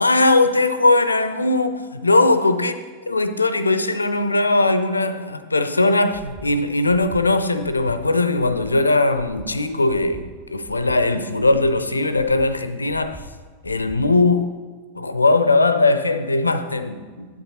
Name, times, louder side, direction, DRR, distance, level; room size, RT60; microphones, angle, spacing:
voice 1, 0.0-2.7 3.1-13.2 13.6-14.6 14.9-17.3, left 2 dB, 80° left, 0.5 m, -19 dB
Breathing, 6.1-6.5 6.9-7.2 7.6-8.0 8.4-8.7 9.1-9.5 9.9-10.2 10.6-11.0 11.4-11.7 12.1-12.5 12.9-13.2 13.6-14.0, right 2 dB, 30° right, 3.3 m, -42 dB
11.0 x 8.6 x 4.1 m
figure-of-eight pair, 90°, 0 cm